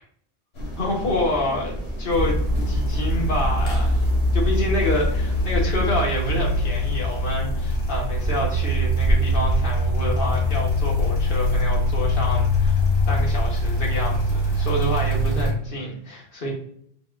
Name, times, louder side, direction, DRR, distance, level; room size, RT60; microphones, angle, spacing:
sound 1, 0.5-5.6, right 1 dB, 80° left, 1.6 m, -32 dB
voice 1, 0.8-3.9 4.3-16.5, left 1 dB, 60° left, -2 dB, 1.4 m, -28 dB
sound 2, 2.1-15.5, left 1 dB, 35° left, 1.3 m, -22 dB
4.1 x 2.4 x 3.6 m, 0.68 s
omnidirectional pair, 1.1 m